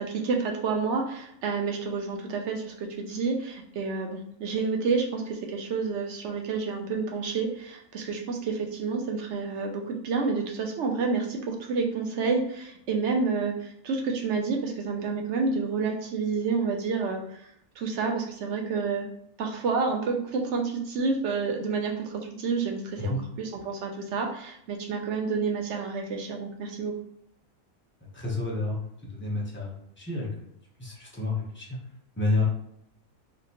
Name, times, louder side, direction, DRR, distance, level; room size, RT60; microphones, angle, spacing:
voice 1, 0.0-17.4 17.8-19.1 19.4-26.9, right 4 dB, 65° right, 2 dB, 0.8 m, -29 dB
voice 2, 28.1-28.8 29.1-30.3 30.8-31.8 32.2-32.5, left 2 dB, 10° left, -4 dB, 0.6 m, -29 dB
3.6 x 2.4 x 2.9 m, 0.71 s
omnidirectional pair, 1.5 m